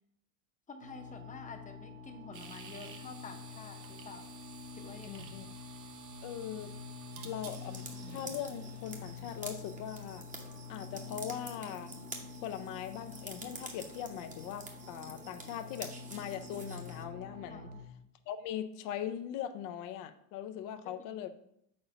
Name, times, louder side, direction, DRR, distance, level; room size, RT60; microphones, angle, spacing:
voice 1, 0.7-4.2 4.7-5.2 17.5-17.8 20.7-21.3, left 4 dB, 20° left, 5 dB, 0.8 m, -49 dB
sound 1, 0.8-17.8, left 5 dB, 90° right, 1.2 m, -48 dB
sound 2, 2.3-9.6, right 6 dB, 55° right, 0.9 m, -53 dB
voice 2, 5.1-5.5 6.2-6.7 7.2-10.3 10.7-11.9 12.4-17.7 18.3-21.3, left 10 dB, 50° left, 10 dB, 0.5 m, -40 dB
sound 3, 7.4-17.0, right 3 dB, 20° right, 0.9 m, -48 dB
4.3 x 3.9 x 5.5 m, 0.76 s
supercardioid pair, 105°, 40 cm